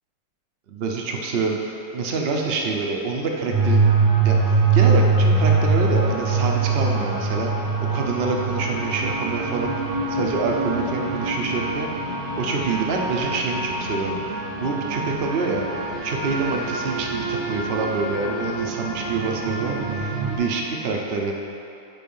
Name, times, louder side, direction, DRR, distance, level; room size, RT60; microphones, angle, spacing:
voice 1, 0.7-3.9 4.2-7.5 7.9-9.7 10.1-15.7 16.0-21.3, right 4 dB, 65° right, 0 dB, 0.6 m, -26 dB
sound 1, 3.5-20.4, right 4 dB, 85° right, 1.8 m, -23 dB
7.7 x 4.2 x 5.4 m, 2.8 s
omnidirectional pair, 2.0 m